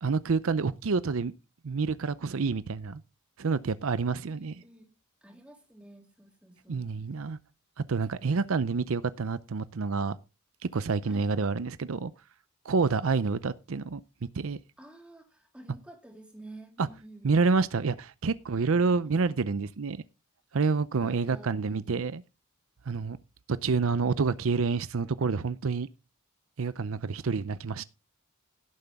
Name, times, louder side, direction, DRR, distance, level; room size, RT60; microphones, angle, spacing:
voice 1, 0.0-1.3 1.6-3.0 3.4-4.5 6.7-7.4 7.9-10.2 10.7-12.1 12.6-14.0 14.3-14.6 16.8-16.9 17.2-20.0 20.5-22.2 22.9-23.2 23.5-25.9 26.6-27.8, right 4 dB, 70° right, 0.6 m, -28 dB
voice 2, 4.1-4.9 5.2-6.9 11.0-11.3 14.8-17.3 18.5-19.1 21.0-22.0, right 1 dB, 5° right, 3.2 m, -51 dB
17.0 x 7.8 x 3.5 m
head